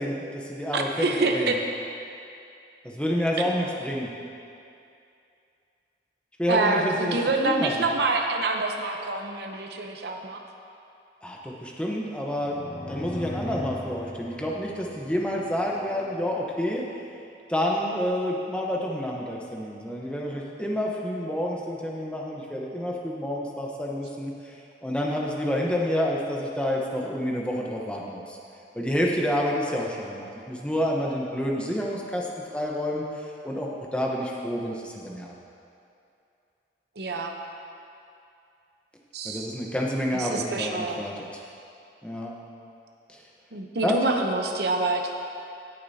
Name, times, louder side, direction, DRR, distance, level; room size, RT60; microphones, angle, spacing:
voice 1, 0.0-1.5 2.8-4.1 6.4-7.2 7.4-7.7 11.2-12.6 12.9-16.8 17.5-24.6 24.8-28.4 28.7-35.3 39.2-41.1 42.0-42.3 43.1-43.2 43.8-43.9, equal, 5° left, -2 dB, 0.9 m, -29 dB
voice 2, 0.7-1.6 3.4-3.5 6.5-10.4 37.0-37.3 39.1-39.5 40.1-41.0 43.5-45.1, right 3 dB, 65° right, 2 dB, 0.8 m, -26 dB
sound 1, 12.4-16.1, left 2 dB, 30° left, 0.4 m, -38 dB
19.0 x 6.7 x 2.8 m, 2.6 s
head